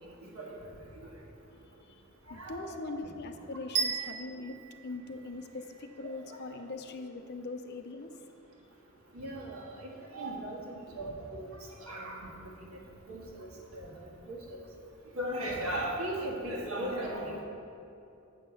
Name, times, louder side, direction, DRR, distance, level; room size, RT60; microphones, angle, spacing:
voice 1, 0.0-0.7 2.3-2.8 9.1-11.5 11.8-12.8 13.1-14.0 14.3-14.6 15.2-17.4, right 1 dB, 85° right, -2 dB, 1.7 m, -38 dB
voice 2, 2.3-4.6 4.8-8.1, left 3 dB, 50° left, 7 dB, 0.6 m, -41 dB
sound 1, 3.7-5.8, right 6 dB, 50° right, 0.8 m, -34 dB
7.8 x 6.3 x 6.5 m, 2.7 s
head